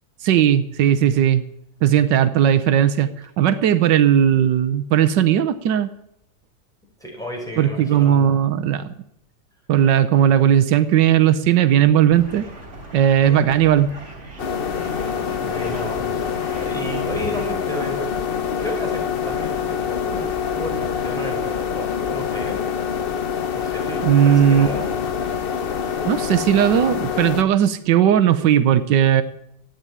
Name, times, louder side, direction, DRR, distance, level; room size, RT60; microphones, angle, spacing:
voice 1, 0.2-1.4 1.8-3.1 3.4-5.9 7.6-8.9 9.7-12.4 12.9-13.9 24.0-24.7 26.0-29.2, right 10 dB, 85° right, 11 dB, 1.5 m, -17 dB
voice 2, 7.0-8.3 13.2-13.4 15.3-18.2 18.6-23.1 23.4-24.9, equal, ahead, -1 dB, 5.0 m, -33 dB
sound 1, 12.1-17.5, right 2 dB, 35° right, 4.1 m, -39 dB
sound 2, 14.4-27.4, left 7 dB, 45° left, 0.8 m, -25 dB
13.5 x 9.0 x 9.7 m, 0.77 s
omnidirectional pair, 1.9 m